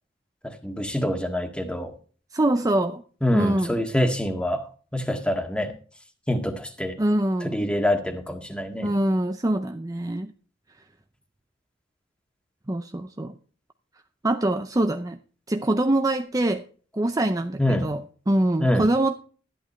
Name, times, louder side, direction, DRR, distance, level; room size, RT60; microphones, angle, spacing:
voice 1, 0.4-1.9 3.2-5.7 6.3-7.0 7.4-8.9 17.6-17.9 18.6-18.9, left 1 dB, 5° left, 5 dB, 1.8 m, -25 dB
voice 2, 2.3-3.0 3.3-3.8 7.0-7.7 8.8-10.3 12.7-13.4 14.2-15.2 15.5-16.6 17.0-18.0 18.3-19.2, right 1 dB, 20° right, 7 dB, 0.6 m, -24 dB
13.0 x 11.0 x 3.2 m, 0.41 s
head